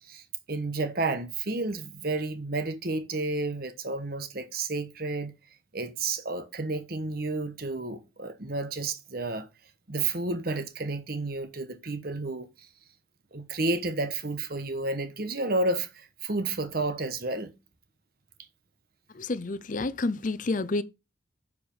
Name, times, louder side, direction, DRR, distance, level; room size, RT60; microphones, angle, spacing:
voice 1, 0.0-5.3 5.7-9.5 9.9-12.5 13.3-17.5, right 2 dB, 50° right, 1.2 m, -31 dB
voice 2, 19.1-20.8, left 2 dB, 40° left, 0.5 m, -29 dB
9.5 x 4.9 x 5.5 m
head